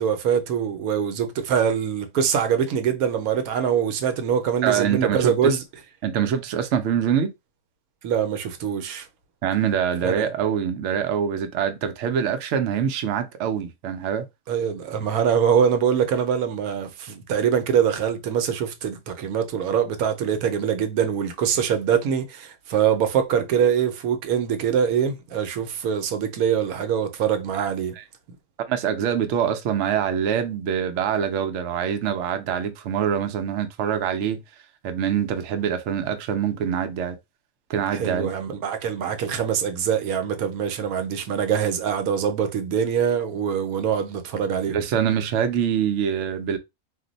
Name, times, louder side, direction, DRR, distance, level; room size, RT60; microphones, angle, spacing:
voice 1, 0.0-5.6 8.0-9.0 10.0-10.3 14.5-28.0 37.9-44.8, right 8 dB, 85° right, 1.1 m, -23 dB
voice 2, 4.6-5.3 6.0-7.3 9.4-14.2 27.5-27.7 28.0-28.1 28.7-34.4 34.8-37.2 37.7-38.3 44.7-46.6, right 8 dB, 65° right, 0.8 m, -24 dB
2.5 x 2.1 x 3.8 m
omnidirectional pair, 1.5 m